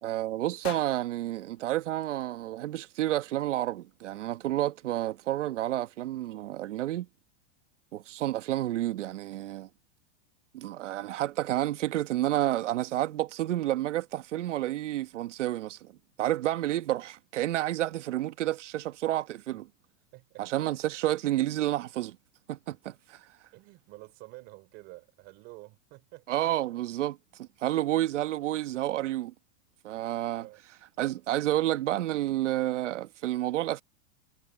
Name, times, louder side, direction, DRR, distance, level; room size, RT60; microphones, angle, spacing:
voice 1, 0.0-7.1 7.9-9.7 10.5-15.9 16.2-19.7 20.4-22.2 22.5-23.2 26.3-29.3 29.8-30.5 31.0-33.8, right 14 dB, 90° right, 1.5 m, -30 dB
sound 1, 0.6-2.8, left 15 dB, 60° left, 1.6 m, -47 dB
voice 2, 20.1-20.4 23.5-26.3 27.9-28.0 30.4-30.6, right 21 dB, 30° right, 4.2 m, -49 dB
supercardioid pair, 180°, 36 cm